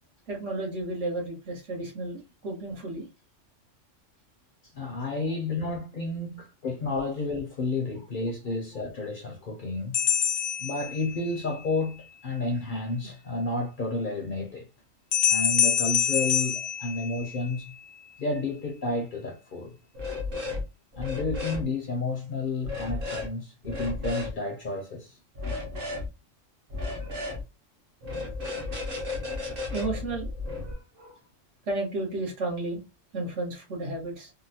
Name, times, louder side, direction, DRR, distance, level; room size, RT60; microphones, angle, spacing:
voice 1, 0.3-3.1 27.0-27.2 29.7-30.3 30.6-31.2 31.7-32.8 33.1-34.3, right 2 dB, 70° right, 1.4 m, -33 dB
voice 2, 4.7-10.0 10.6-14.7 15.3-17.7 18.2-19.8 21.0-25.2, left 2 dB, 55° left, 0.6 m, -31 dB
sound 1, 9.9-11.5 15.1-17.6, left 9 dB, 75° left, 0.9 m, -26 dB
sound 2, 19.9-20.6 20.9-21.6 22.6-23.3 23.6-24.3 25.3-26.1 26.7-27.4 28.0-30.7, left 3 dB, 50° right, 1.0 m, -33 dB
3.6 x 2.1 x 2.7 m
omnidirectional pair, 1.3 m